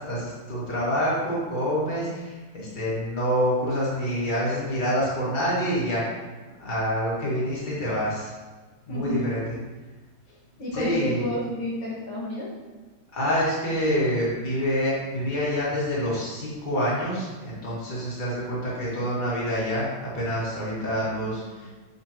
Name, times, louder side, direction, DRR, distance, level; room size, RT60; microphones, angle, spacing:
voice 1, 0.0-6.2 6.6-8.3 8.9-9.6 10.7-11.3 13.1-21.7, equal, 25° left, -7 dB, 2.2 m, -27 dB
voice 2, 8.9-9.3 10.6-12.5 20.7-21.7, left 1 dB, 70° left, -6 dB, 2.5 m, -32 dB
7.3 x 6.9 x 3.0 m, 1.3 s
omnidirectional pair, 2.2 m